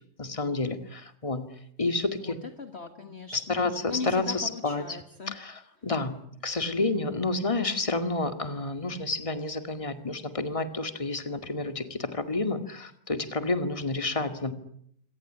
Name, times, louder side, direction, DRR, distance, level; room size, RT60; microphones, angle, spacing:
voice 1, 0.2-1.5 1.8-2.4 3.3-5.0 5.3-6.2 6.4-14.5, left 3 dB, 20° left, 8 dB, 2.1 m, -30 dB
voice 2, 2.2-3.6 3.9-5.4, left 4 dB, 40° left, 7 dB, 1.8 m, -39 dB
26.0 x 18.5 x 9.8 m, 0.70 s
omnidirectional pair, 1.7 m